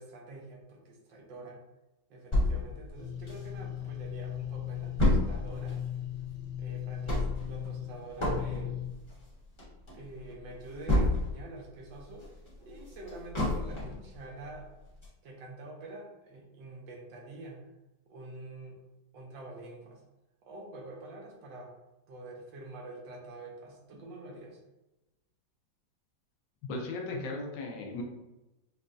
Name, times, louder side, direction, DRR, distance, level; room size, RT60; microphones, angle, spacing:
voice 1, 0.0-1.6 2.1-5.8 6.6-8.8 9.9-12.3 12.6-14.7 15.2-17.7 18.1-18.8 19.1-20.0 20.4-21.7 22.1-24.6, right 2 dB, 75° right, -1 dB, 1.5 m, -46 dB
sound 1, 2.3-3.9 4.2-4.3 4.5-11.5 11.9-14.1 14.5-14.6 15.0-15.1, left 1 dB, 20° left, 1.0 m, -30 dB
sound 2, 3.0-8.9, left 11 dB, 70° left, 1.7 m, -38 dB
voice 2, 26.6-28.0, left 2 dB, 90° left, 1 dB, 1.4 m, -36 dB
5.1 x 2.3 x 2.5 m, 0.99 s
omnidirectional pair, 2.1 m